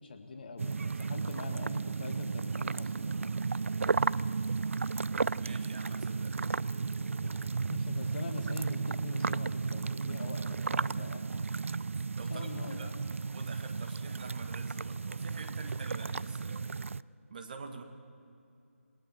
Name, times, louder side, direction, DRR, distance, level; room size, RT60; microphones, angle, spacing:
voice 1, 0.0-3.3 7.0-11.3 12.3-12.9, left 3 dB, 40° left, 5 dB, 2.1 m, -44 dB
sound 1, 0.6-17.0, right 4 dB, 65° right, 0.4 m, -34 dB
voice 2, 5.3-6.4 12.2-12.9 13.3-16.7 17.3-17.8, right 4 dB, 35° right, 4 dB, 1.8 m, -46 dB
28.0 x 20.5 x 4.6 m, 2.6 s
figure-of-eight pair, 160°, 8 cm